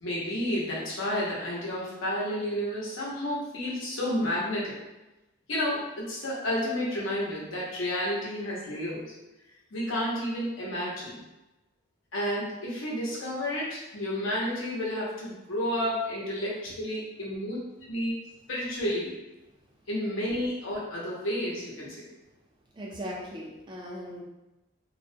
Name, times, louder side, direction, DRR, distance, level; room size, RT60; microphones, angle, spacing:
voice 1, 0.0-4.8 5.5-9.1 9.7-11.2 12.1-17.6 17.9-18.1 18.5-19.2 19.9-22.1, left 1 dB, 80° left, -6 dB, 0.8 m, -31 dB
voice 2, 15.7-16.2 18.6-18.7 22.7-24.2, equal, 25° right, -3 dB, 0.3 m, -36 dB
2.3 x 2.1 x 2.6 m, 1.0 s
head